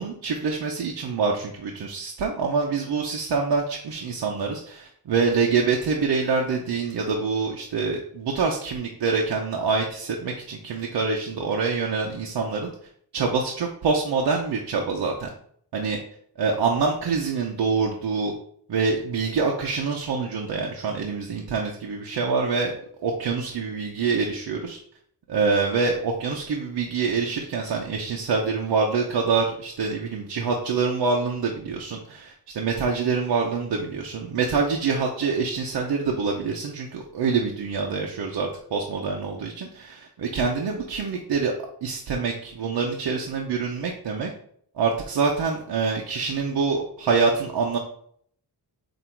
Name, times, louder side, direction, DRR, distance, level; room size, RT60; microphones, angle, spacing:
voice 1, 0.0-12.7 13.1-15.3 15.7-16.0 16.4-18.3 18.7-22.7 23.0-24.8 25.3-41.5 41.8-44.3 44.8-47.8, right 4 dB, 80° right, 0 dB, 0.9 m, -25 dB
7.9 x 2.7 x 4.6 m, 0.63 s
wide cardioid pair, 160°, 41 cm